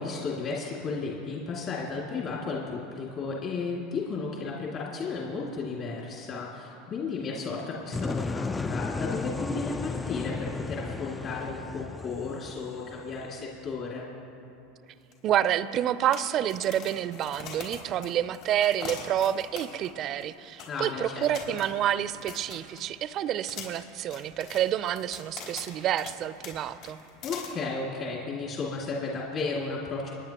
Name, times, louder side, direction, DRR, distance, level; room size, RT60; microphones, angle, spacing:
voice 1, 0.0-14.1 20.7-21.3 27.2-30.1, left 4 dB, 45° left, -4 dB, 2.4 m, -34 dB
sound 1, 7.9-13.8, left 4 dB, 15° left, 0.3 m, -34 dB
sound 2, 15.1-15.2 15.4-15.5 16.1-19.9 20.2-20.3 20.6-20.9 21.2-23.1 23.5-26.1 26.4-26.6 26.8-27.5, left 6 dB, 60° left, 3.9 m, -42 dB
voice 2, 15.2-27.0, right 11 dB, 45° right, 15 dB, 0.5 m, -28 dB
29.5 x 9.9 x 3.0 m, 2.7 s
hypercardioid pair, 90°, 0 cm